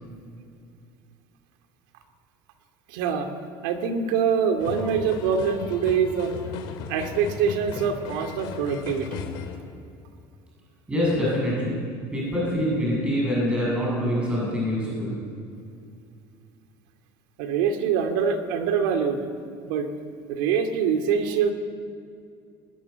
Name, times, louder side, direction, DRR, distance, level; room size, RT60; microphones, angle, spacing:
voice 1, 2.9-3.3 3.6-6.3 6.9-9.3 17.4-19.2 19.6-19.9 20.3-21.5, right 7 dB, 85° right, 5 dB, 2.4 m, -24 dB
sound 1, 4.6-9.6, left 6 dB, 55° left, 2.5 m, -36 dB
voice 2, 10.9-11.8 12.1-15.1, equal, 10° right, -5 dB, 7.2 m, -25 dB
20.5 x 19.0 x 8.2 m, 2.5 s
cardioid pair, 175°, 10 cm